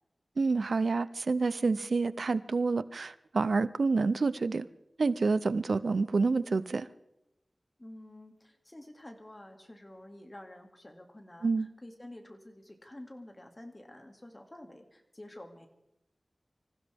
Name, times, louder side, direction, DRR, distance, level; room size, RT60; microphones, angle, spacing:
voice 1, 0.4-4.7 5.0-6.9 11.4-11.7, right 4 dB, 80° right, 16 dB, 0.5 m, -28 dB
voice 2, 7.8-15.7, left 1 dB, 25° left, 4 dB, 2.3 m, -49 dB
25.5 x 15.5 x 3.5 m, 0.86 s
wide cardioid pair, 80°, 0 cm